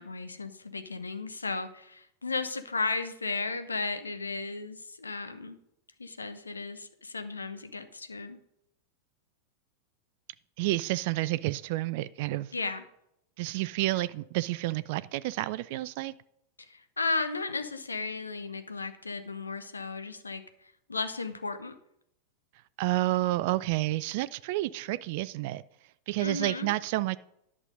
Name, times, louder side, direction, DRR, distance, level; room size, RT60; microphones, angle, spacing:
voice 1, 0.0-5.6 6.0-8.4 12.5-12.8 16.7-20.4 20.9-21.8 26.2-26.7, left 3 dB, 75° left, 0.9 m, -34 dB
voice 2, 10.6-12.5 13.4-16.1 22.8-25.6 26.1-27.2, right 17 dB, 50° right, 0.3 m, -30 dB
11.0 x 6.1 x 5.2 m
figure-of-eight pair, 90°, 0 cm